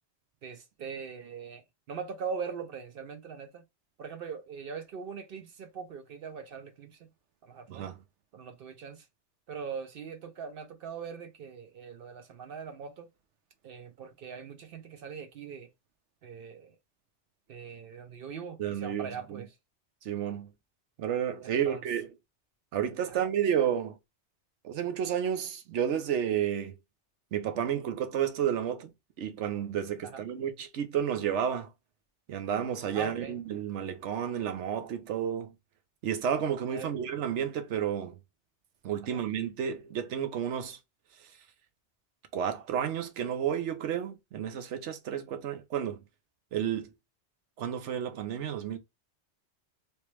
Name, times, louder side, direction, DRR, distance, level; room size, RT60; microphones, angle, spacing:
voice 1, 0.4-3.6 4.0-7.1 7.4-7.9 8.3-9.1 9.5-13.1 13.6-15.7 16.2-16.8 17.5-19.6 21.4-21.9 23.1-23.3 30.0-30.2 32.9-33.4 36.7-37.0 39.1-39.2, right 6 dB, 60° right, 0.7 m, -41 dB
voice 2, 18.6-19.4 20.0-20.5 21.0-22.1 22.7-24.0 24.6-26.8 27.3-28.9 29.2-31.7 32.3-35.5 36.0-38.2 38.8-40.8 42.3-46.0 46.5-46.9 47.6-48.8, right 9 dB, 80° right, 1.0 m, -31 dB
3.3 x 2.9 x 3.1 m
omnidirectional pair, 1.2 m